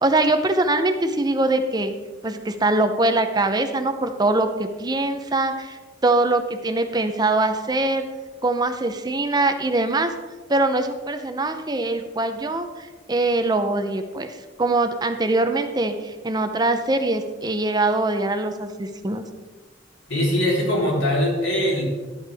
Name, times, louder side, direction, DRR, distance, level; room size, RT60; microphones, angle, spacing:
voice 1, 0.0-1.9 2.2-8.0 8.4-10.1 10.5-19.2, right 2 dB, 20° right, 7 dB, 0.6 m, -23 dB
voice 2, 20.1-21.8, left 1 dB, 85° left, -4 dB, 3.7 m, -21 dB
12.5 x 8.7 x 3.5 m, 1.3 s
head